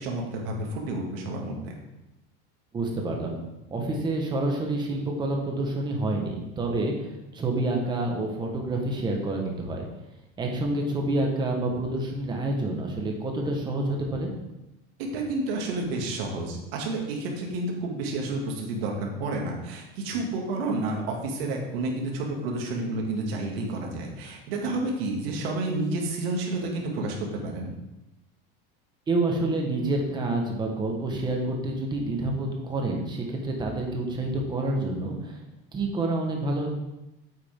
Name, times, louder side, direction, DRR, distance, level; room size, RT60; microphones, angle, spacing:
voice 1, 0.0-1.8 15.1-27.7, right 2 dB, 80° right, 0 dB, 2.4 m, -30 dB
voice 2, 2.7-3.4 3.7-9.9 10.4-14.3 29.1-35.4 35.7-36.7, right 2 dB, 15° right, 1 dB, 1.3 m, -28 dB
8.7 x 8.6 x 3.7 m, 0.96 s
cardioid pair, 175°, 30 cm